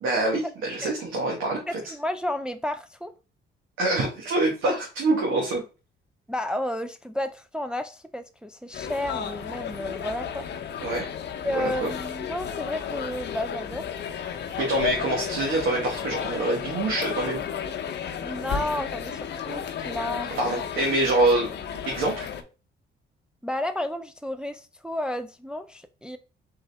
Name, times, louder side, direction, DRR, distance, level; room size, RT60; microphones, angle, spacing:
voice 1, 0.0-1.8 3.8-5.6 10.8-11.1 11.5-11.9 14.6-17.4 20.4-21.5 21.9-22.3, right 2 dB, 85° right, 1.4 m, -25 dB
voice 2, 1.7-3.1 6.3-10.5 11.4-13.9 18.2-20.3 23.4-26.2, left 1 dB, 5° right, 0.4 m, -32 dB
sound 1, 8.7-22.4, left 8 dB, 60° left, 0.7 m, -33 dB
3.8 x 3.6 x 3.3 m
cardioid pair, 90°, 20 cm